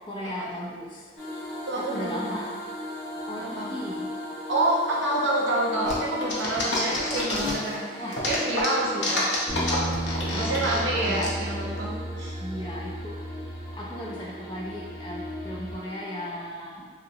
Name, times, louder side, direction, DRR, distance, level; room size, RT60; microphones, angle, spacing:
voice 1, 0.1-1.1 1.8-2.5 3.3-4.1 6.7-7.0 8.0-8.3 10.3-11.3 12.4-13.2 13.7-16.9, equal, 25° left, -4 dB, 0.4 m, -36 dB
sound 1, 1.2-16.3, left 1 dB, 45° left, 1.1 m, -38 dB
voice 2, 1.7-2.4 3.4-3.8 4.5-9.3 10.4-12.4, right 1 dB, 75° right, -3 dB, 0.7 m, -28 dB
sound 2, 5.9-7.7 8.1-11.3, left 2 dB, 65° left, 0.7 m, -29 dB
sound 3, 9.5-15.7, equal, 15° right, 1.0 m, -35 dB
3.0 x 2.8 x 2.7 m, 1.5 s
head